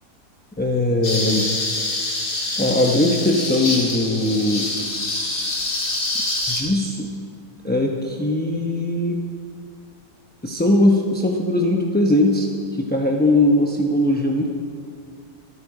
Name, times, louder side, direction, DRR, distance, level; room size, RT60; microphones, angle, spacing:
voice 1, 0.6-1.5 2.6-4.7 6.5-7.1 7.6-9.2 10.4-14.5, left 1 dB, 10° left, 1 dB, 0.6 m, -20 dB
sound 1, 1.0-6.6, left 2 dB, 75° left, 2.9 m, -25 dB
24.5 x 9.3 x 4.9 m, 2.1 s
omnidirectional pair, 1.7 m